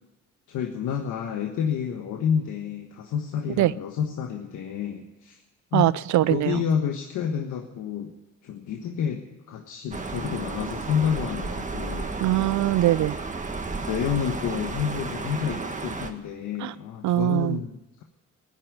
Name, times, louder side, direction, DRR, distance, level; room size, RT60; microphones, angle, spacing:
voice 1, 0.5-5.4 5.7-5.9 6.3-8.1 8.4-12.1 13.9-18.0, left 7 dB, 85° left, 3 dB, 1.4 m, -29 dB
voice 2, 5.7-6.6 12.2-13.2 16.6-16.7 17.0-17.6, right 14 dB, 70° right, 18 dB, 0.5 m, -22 dB
sound 1, 9.9-16.1, right 3 dB, 25° right, 1.6 m, -33 dB
14.5 x 9.9 x 9.5 m, 0.97 s
cardioid pair, 90°, 30 cm